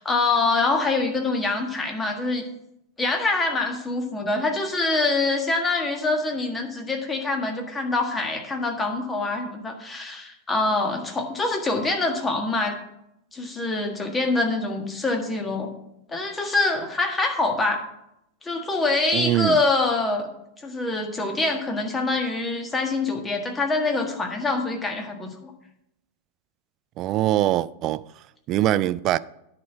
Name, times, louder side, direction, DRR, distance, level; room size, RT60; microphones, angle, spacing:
voice 1, 0.0-2.5 3.0-12.8 13.3-15.7 16.1-17.8 18.4-20.3 20.6-25.5, left 3 dB, 15° left, 1.6 m, -25 dB
voice 2, 19.1-19.6 27.0-28.0 28.5-29.2, right 14 dB, 35° right, 0.3 m, -22 dB
10.0 x 4.4 x 7.5 m
figure-of-eight pair, 90°, 0 cm